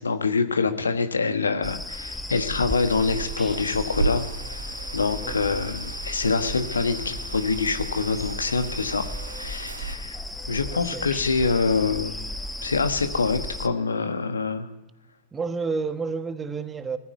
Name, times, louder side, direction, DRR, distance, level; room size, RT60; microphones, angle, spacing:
voice 1, 0.0-4.2 4.5-9.1 9.4-10.2 10.5-12.2 12.6-14.7, left 4 dB, 75° left, 1.4 m, -25 dB
sound 1, 1.6-13.7, left 1 dB, 5° left, 1.0 m, -35 dB
sound 2, 2.7-10.0, right 4 dB, 75° right, 0.9 m, -36 dB
sound 3, 4.4-5.3 6.6-7.2 8.8-9.5 10.3-11.0, left 4 dB, 25° left, 4.4 m, -52 dB
voice 2, 10.7-11.1 15.3-17.0, right 4 dB, 15° right, 1.3 m, -30 dB
19.5 x 15.0 x 9.3 m
figure-of-eight pair, 90°, 0 cm